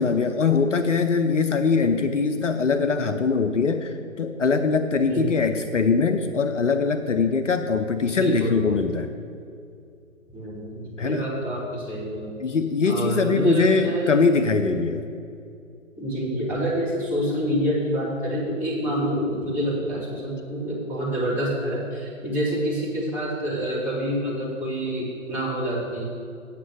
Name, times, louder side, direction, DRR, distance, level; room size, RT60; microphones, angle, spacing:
voice 1, 0.0-9.1 11.0-11.3 12.4-15.1, left 4 dB, 60° left, 8 dB, 0.7 m, -22 dB
voice 2, 5.1-5.5 8.1-8.6 10.3-12.4 12.9-14.1 14.4-14.8 16.0-26.0, equal, 5° right, -10 dB, 2.0 m, -27 dB
8.4 x 6.2 x 7.9 m, 2.4 s
figure-of-eight pair, 145°, 41 cm